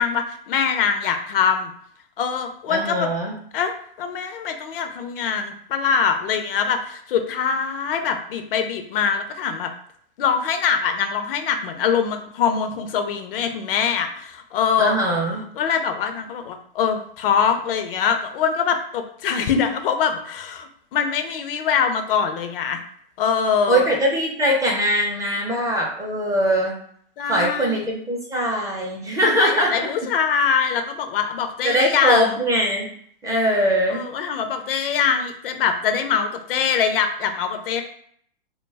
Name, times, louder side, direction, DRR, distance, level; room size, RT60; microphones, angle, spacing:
voice 1, 0.0-1.7 2.2-3.1 3.5-9.7 10.2-15.0 15.6-22.8 23.2-23.8 27.2-27.8 29.2-32.4 33.9-37.8, left 6 dB, 70° left, 7 dB, 0.5 m, -23 dB
voice 2, 2.7-3.4 14.8-15.5 23.7-26.8 27.3-29.9 31.6-32.9 33.2-34.0, equal, 10° right, -1 dB, 0.4 m, -21 dB
2.2 x 2.0 x 3.2 m, 0.63 s
hypercardioid pair, 115°, 29 cm